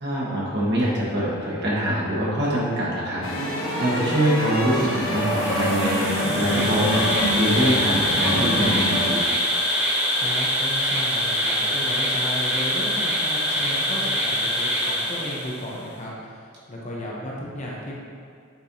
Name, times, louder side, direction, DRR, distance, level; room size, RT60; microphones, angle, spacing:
voice 1, 0.0-9.3, equal, 50° right, -6 dB, 1.5 m, -24 dB
sound 1, 3.2-9.2, equal, 60° left, 1.1 m, -26 dB
sound 2, 4.7-8.8, equal, 85° right, 1.2 m, -40 dB
Insect, 4.9-15.7, equal, 10° right, 1.3 m, -24 dB
voice 2, 10.2-16.3 16.7-18.1, equal, 30° left, -4 dB, 0.8 m, -34 dB
8.4 x 4.5 x 2.8 m, 2.2 s
head